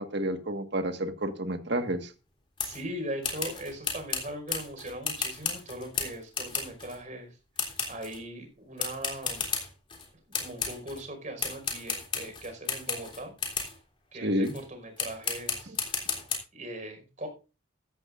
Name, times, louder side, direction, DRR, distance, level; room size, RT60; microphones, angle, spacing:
voice 1, 0.0-2.1 14.2-14.5 15.7-15.8, right 1 dB, 55° right, 7 dB, 1.6 m, -30 dB
sound 1, 2.6-2.8 3.2-7.0 7.6-8.2 8.8-10.1 10.3-11.0 11.4-13.8 14.4-14.6 15.0-16.4, left 5 dB, 25° left, 3.3 m, -33 dB
voice 2, 2.6-7.4 7.9-9.4 10.4-13.3 14.1-15.8 16.5-17.3, right 1 dB, 40° right, 4 dB, 5.0 m, -40 dB
14.5 x 14.0 x 2.5 m, 0.31 s
head